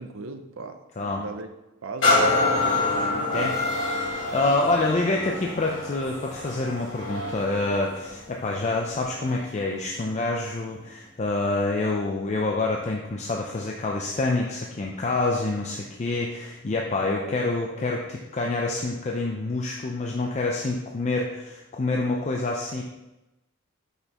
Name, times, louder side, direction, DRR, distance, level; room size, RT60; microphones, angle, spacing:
voice 1, 0.0-1.5 1.8-2.2 3.1-3.6 17.1-17.9, right 3 dB, 75° right, 7 dB, 0.5 m, -38 dB
sound 1, 2.0-9.6 10.2-10.3, left 2 dB, 65° left, 1.6 m, -27 dB
voice 2, 4.0-22.8, left 2 dB, 35° left, 0 dB, 0.4 m, -27 dB
6.1 x 5.5 x 2.9 m, 0.98 s
head